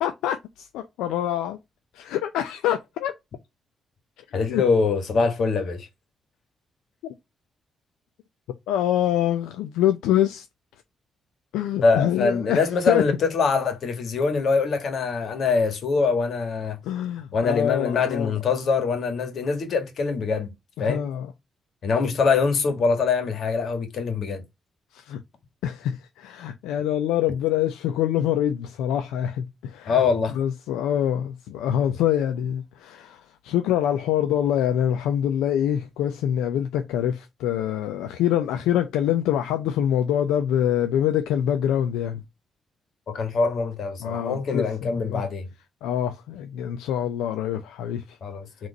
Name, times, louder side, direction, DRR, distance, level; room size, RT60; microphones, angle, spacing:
voice 1, 0.0-1.6 1.9-3.1 4.5-4.6 7.0-7.1 8.7-10.5 11.5-12.6 12.9-13.0 16.8-18.3 20.8-21.3 24.9-25.2 25.6-30.0 30.3-42.2 44.0-45.3 45.8-48.2, left 10 dB, 85° left, 0.4 m, -25 dB
voice 2, 4.3-5.9 11.8-16.8 17.3-20.5 20.8-21.0 21.8-24.4 29.9-30.4 43.1-45.5 48.2-48.7, left 4 dB, 65° left, 1.6 m, -23 dB
4.1 x 3.1 x 3.9 m
supercardioid pair, 55°, 0 cm